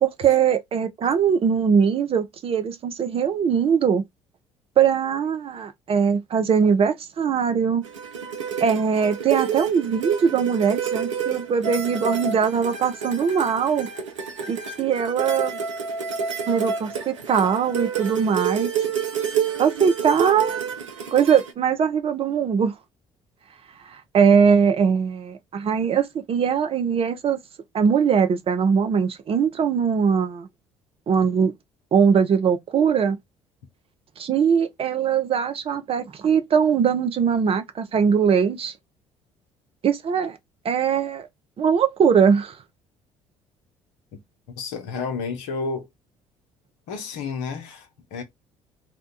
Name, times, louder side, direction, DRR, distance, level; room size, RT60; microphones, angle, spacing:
voice 1, 0.0-4.0 4.8-7.8 8.6-13.9 14.5-15.6 16.5-18.7 19.6-20.6 21.1-22.7 23.9-27.4 27.7-30.5 31.1-31.5 31.9-33.2 34.2-38.7 39.8-40.4 40.6-41.3 41.6-42.6, right 7 dB, 40° right, 0.6 m, -21 dB
sound 1, 7.8-21.5, right 7 dB, 85° right, 0.5 m, -29 dB
voice 2, 44.6-45.9 46.9-48.2, left 4 dB, 70° left, 0.8 m, -31 dB
2.8 x 2.2 x 3.8 m
figure-of-eight pair, 50°, 15 cm